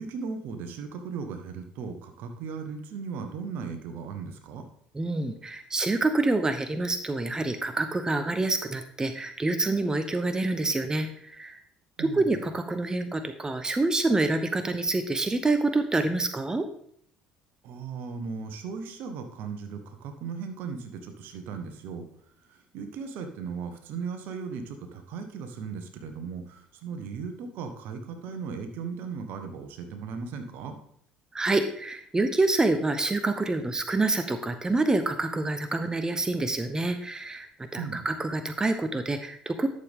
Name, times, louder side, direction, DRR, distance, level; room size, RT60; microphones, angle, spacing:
voice 1, 0.0-4.6 12.0-12.3 17.6-22.0 22.5-30.8 37.8-38.1, right 5 dB, 65° right, 7 dB, 1.4 m, -37 dB
voice 2, 4.9-11.6 12.0-16.6 31.3-39.7, right 2 dB, 20° right, 9 dB, 0.9 m, -27 dB
11.5 x 7.0 x 3.7 m, 0.64 s
hypercardioid pair, 65°, 4 cm